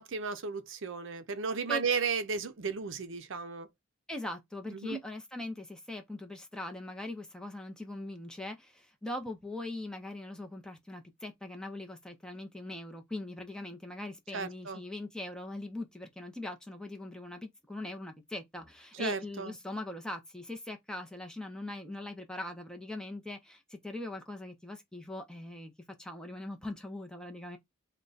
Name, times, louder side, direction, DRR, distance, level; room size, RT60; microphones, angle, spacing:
voice 1, 0.0-3.7 4.7-5.0 14.3-14.8 18.9-19.5, right 5 dB, 70° right, 0.5 m, -34 dB
voice 2, 4.1-27.6, left 2 dB, 5° left, 0.6 m, -41 dB
3.6 x 2.2 x 3.9 m
head